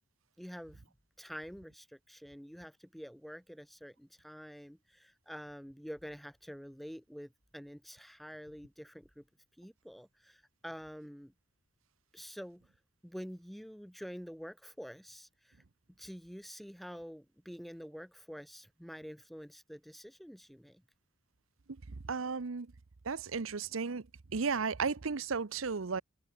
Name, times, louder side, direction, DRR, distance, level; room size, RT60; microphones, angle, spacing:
voice 1, 0.4-0.8 1.2-9.2 9.6-11.3 12.1-12.7 13.0-15.6 16.0-20.8, equal, ahead, 4.3 m, -47 dB
voice 2, 21.9-22.7 23.0-24.1 24.3-26.0, right 5 dB, 75° right, 0.8 m, -34 dB
head